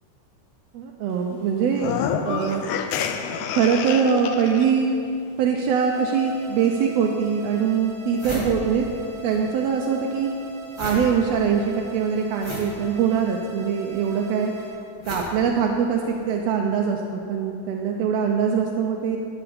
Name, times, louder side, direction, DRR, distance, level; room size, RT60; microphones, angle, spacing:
voice 1, 0.7-2.0 2.2-2.6 3.5-4.9 5.4-8.8 9.2-10.3 10.8-14.5 15.1-19.2, right 6 dB, 80° right, 1 dB, 1.5 m, -23 dB
sound 1, 1.7-4.7, left 8 dB, 80° left, 1.8 m, -28 dB
sound 2, 5.7-14.7, right 5 dB, 55° left, 2.7 m, -42 dB
sound 3, 7.5-7.6 7.8-9.4 9.7-16.2, left 1 dB, 15° left, 1.0 m, -36 dB
12.5 x 7.1 x 5.0 m, 2.6 s
omnidirectional pair, 3.6 m